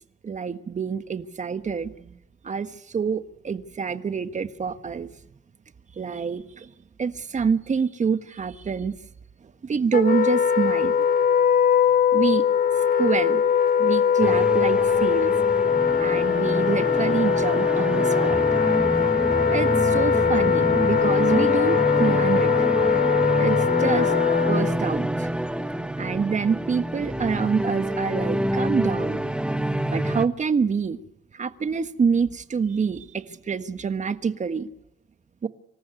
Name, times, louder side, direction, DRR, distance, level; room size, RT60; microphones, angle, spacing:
voice 1, 0.2-2.2 2.4-5.1 6.0-6.7 7.0-9.0 9.6-10.9 12.1-12.5 13.0-13.4 13.8-15.3 16.0-18.4 19.5-22.7 23.4-24.1 24.5-25.3 26.0-29.2 29.9-31.0 31.3-34.7 35.4-35.5, right 5 dB, 35° right, 1.4 m, -26 dB
Wind instrument woodwind instrument, 9.9-24.8, left 7 dB, 50° left, 1.3 m, -21 dB
sound 1, 14.2-30.3, right 1 dB, 5° right, 1.3 m, -27 dB
25.0 x 14.0 x 9.5 m
cardioid pair, 90°, 20 cm